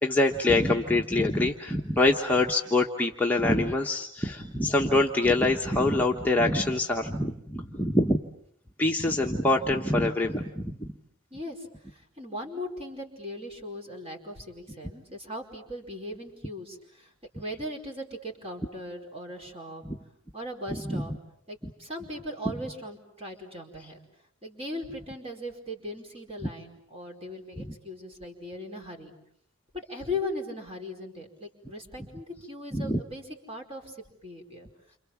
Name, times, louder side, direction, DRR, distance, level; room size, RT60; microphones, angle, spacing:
voice 1, 0.0-8.2 8.8-10.9 19.8-20.0 20.9-21.0 32.7-33.0, left 2 dB, 10° left, -1 dB, 1.2 m, -25 dB
voice 2, 11.3-19.8 20.3-21.1 21.5-24.0 24.4-29.1 29.7-34.0 34.2-34.7, left 1 dB, 30° right, 2 dB, 4.8 m, -39 dB
29.5 x 27.0 x 7.3 m, 0.70 s
head